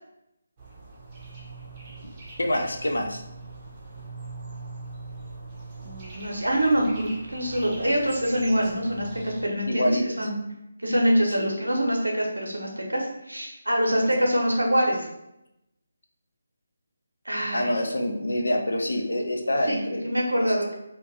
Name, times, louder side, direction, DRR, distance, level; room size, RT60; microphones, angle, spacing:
sound 1, 0.6-9.4, right 3 dB, 20° right, 0.6 m, -41 dB
voice 1, 2.4-3.2 9.7-10.3 11.3-11.5 14.0-14.3 17.5-20.0 20.4-20.5, left 1 dB, 70° left, 3 dB, 0.4 m, -26 dB
voice 2, 5.8-10.4 10.8-15.1 17.2-17.8 19.6-19.8 20.0-20.7, equal, 85° right, 0 dB, 0.7 m, -25 dB
2.5 x 2.2 x 3.0 m, 0.86 s
figure-of-eight pair, 150°, 0 cm